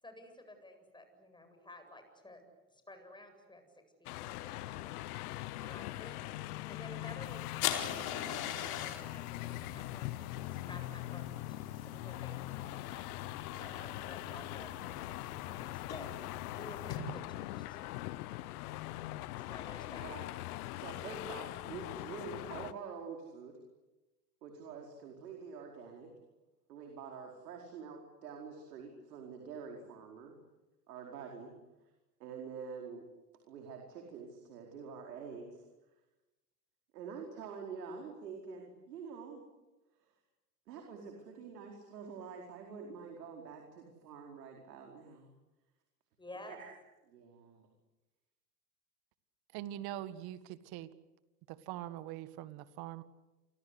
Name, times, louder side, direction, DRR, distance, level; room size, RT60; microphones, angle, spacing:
voice 1, 0.0-2.4 2.7-3.6 4.0-13.1 13.6-17.8 19.4-20.1 46.2-46.6, left 1 dB, 10° left, 6 dB, 7.8 m, -53 dB
sound 1, 4.1-22.7, left 17 dB, 65° left, 1.2 m, -42 dB
sound 2, 7.2-17.0, left 10 dB, 50° left, 4.7 m, -43 dB
voice 2, 20.7-23.6 24.4-26.1 26.7-30.3 30.9-31.5 32.2-33.1 33.5-35.6 36.9-39.4 40.7-45.3 46.5-46.7 47.1-47.6, right 5 dB, 80° right, 2 dB, 4.8 m, -46 dB
voice 3, 49.5-50.9 51.5-53.0, right 13 dB, 50° right, 13 dB, 2.0 m, -43 dB
29.5 x 24.5 x 8.2 m, 1.1 s
hypercardioid pair, 100°, 48 cm